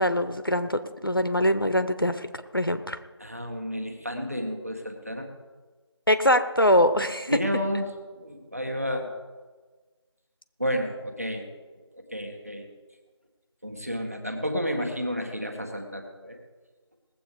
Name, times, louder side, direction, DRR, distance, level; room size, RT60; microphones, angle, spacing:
voice 1, 0.0-2.3 2.5-3.0 6.1-7.3, left 1 dB, 50° left, 9 dB, 0.8 m, -23 dB
voice 2, 3.2-5.3 7.3-9.1 10.6-11.5 11.9-12.7 13.6-16.4, equal, 30° right, 3 dB, 1.7 m, -31 dB
19.5 x 7.8 x 5.0 m, 1.3 s
figure-of-eight pair, 180°, 15 cm